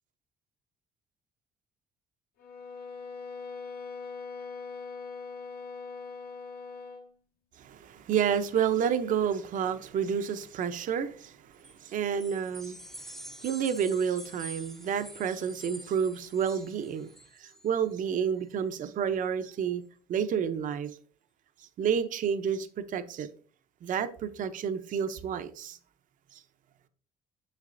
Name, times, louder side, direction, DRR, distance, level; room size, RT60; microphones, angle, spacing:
sound 1, 2.4-7.1, left 4 dB, 65° left, 1.4 m, -41 dB
voice 1, 7.6-17.1 17.4-19.8 20.1-20.9 21.8-23.3 23.8-25.8 26.3-26.4, right 7 dB, 50° right, 0.6 m, -30 dB
Chimes - brass, 11.6-17.8, right 1 dB, ahead, 0.4 m, -47 dB
6.5 x 6.4 x 2.5 m
cardioid pair, 110°, 17 cm